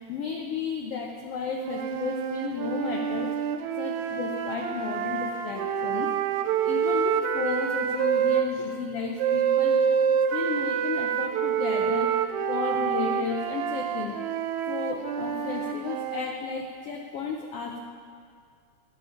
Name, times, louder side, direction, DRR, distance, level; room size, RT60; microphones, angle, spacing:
voice 1, 0.1-3.3 3.8-6.1 6.6-9.8 10.3-12.1 12.5-14.2 14.7-17.8, left 6 dB, 75° left, 1 dB, 1.3 m, -33 dB
sound 1, 1.5-8.5 9.2-16.4, right 8 dB, 75° right, 1.8 m, -27 dB
13.0 x 5.3 x 9.1 m, 2.2 s
omnidirectional pair, 3.7 m